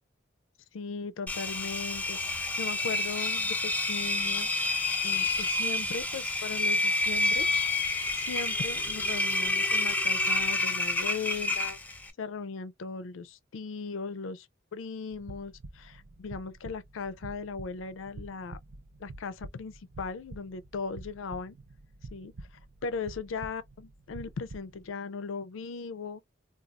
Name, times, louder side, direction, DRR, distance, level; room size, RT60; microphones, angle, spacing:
voice 1, 0.7-4.5 5.0-7.5 8.1-11.8 12.2-18.6 19.0-21.6 22.1-22.3 22.8-26.2, left 5 dB, 80° left, 0.4 m, -38 dB
Engine, 1.3-12.1, left 2 dB, 10° left, 0.5 m, -29 dB
sound 1, 15.1-24.9, right 2 dB, 65° right, 0.6 m, -47 dB
4.0 x 2.3 x 2.3 m
head